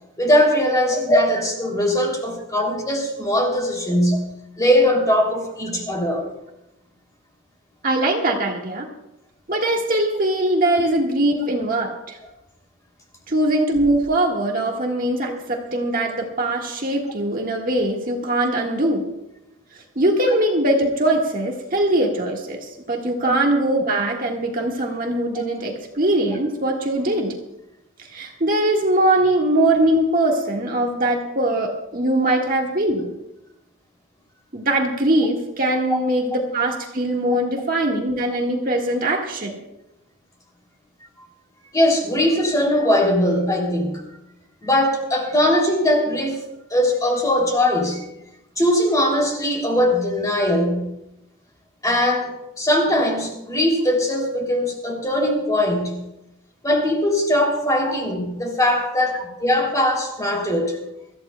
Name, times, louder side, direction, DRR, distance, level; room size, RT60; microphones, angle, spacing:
voice 1, 0.2-6.3 15.3-15.4 41.7-44.0 44.6-46.4 46.7-48.1 48.6-50.9 51.8-56.0 56.6-60.8, left 1 dB, 15° left, 1 dB, 2.9 m, -20 dB
voice 2, 7.8-8.9 9.5-12.2 13.3-19.1 19.9-27.3 28.1-33.1 34.5-39.5 57.8-57.9, right 1 dB, 40° right, 0 dB, 1.6 m, -21 dB
25.0 x 14.5 x 2.3 m, 0.90 s
head